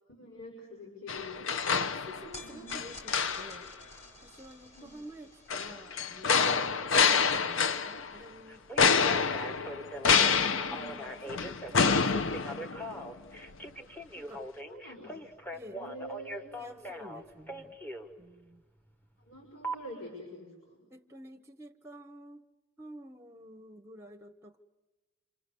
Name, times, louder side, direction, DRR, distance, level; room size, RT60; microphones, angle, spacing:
voice 1, 0.1-1.5 2.4-2.8 4.7-4.9 10.3-11.0 14.6-15.2 15.7-16.5 19.2-20.9, equal, 90° left, -2 dB, 6.4 m, -46 dB
sound 1, 1.1-2.4 2.7-3.7 5.5-8.2 8.8-13.1 13.5-13.6, left 5 dB, 65° left, 0.8 m, -27 dB
voice 2, 1.8-3.7 4.2-9.6 10.0-10.9 11.3-12.4 14.1-14.5 15.5-15.8 16.6-17.8 18.2-18.6 20.9-22.4 22.8-24.6, equal, 15° right, 8 dB, 0.9 m, -50 dB
sound 2, 2.3-8.7, left 1 dB, 35° left, 5.1 m, -53 dB
Telephone, 8.5-18.1 19.6-19.8, equal, 10° left, 1.2 m, -41 dB
27.5 x 27.0 x 6.9 m, 1.2 s
head